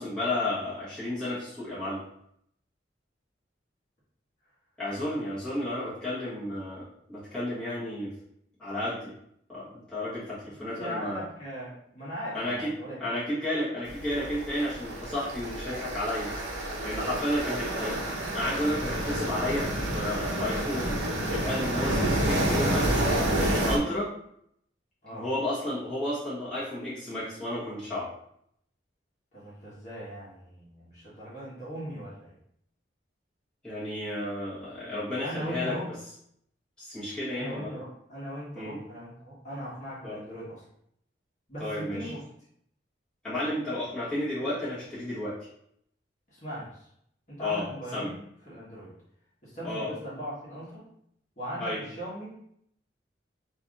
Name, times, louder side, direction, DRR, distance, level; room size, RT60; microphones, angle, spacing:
voice 1, 0.0-2.0 4.8-8.1 8.6-9.1 9.5-11.2 12.3-12.7 13.0-16.3 16.8-18.0 18.3-21.0 21.3-23.1 23.6-24.1 25.1-28.1 33.6-35.8 36.8-37.8 38.5-38.8 40.0-40.2 41.6-42.1 43.2-45.5 47.4-47.6 47.9-48.1 49.6-49.9 51.6-51.8, left 1 dB, 5° left, -12 dB, 1.5 m, -32 dB
voice 2, 10.6-13.0 17.3-17.5 25.0-25.2 29.3-32.4 34.8-34.9 35.2-35.9 37.3-40.6 41.5-42.2 46.3-46.9 47.3-48.2 48.5-48.9 49.4-50.8 51.4-52.3, equal, 40° left, -8 dB, 1.3 m, -39 dB
sound 1, 13.9-23.8, right 1 dB, 80° right, 0.9 m, -29 dB
5.6 x 2.7 x 2.4 m, 0.71 s
head